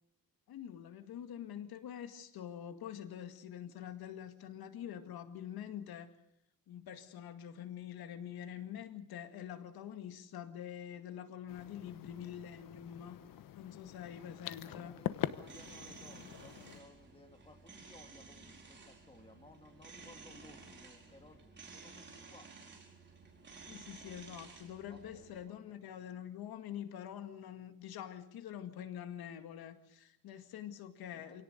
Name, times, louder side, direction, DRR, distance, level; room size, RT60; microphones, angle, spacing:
voice 1, 0.5-6.1 6.7-13.2 13.5-14.9 23.7-31.4, left 10 dB, 85° left, 8 dB, 2.2 m, -46 dB
sound 1, 11.5-16.8, left 11 dB, 65° left, 1.1 m, -44 dB
voice 2, 14.6-22.5 24.9-25.8 31.1-31.4, left 2 dB, 15° left, 5 dB, 2.6 m, -59 dB
sound 2, 15.2-25.4, right 4 dB, 30° right, 4.8 m, -54 dB
28.0 x 18.0 x 6.7 m, 0.76 s
cardioid pair, 155°, 36 cm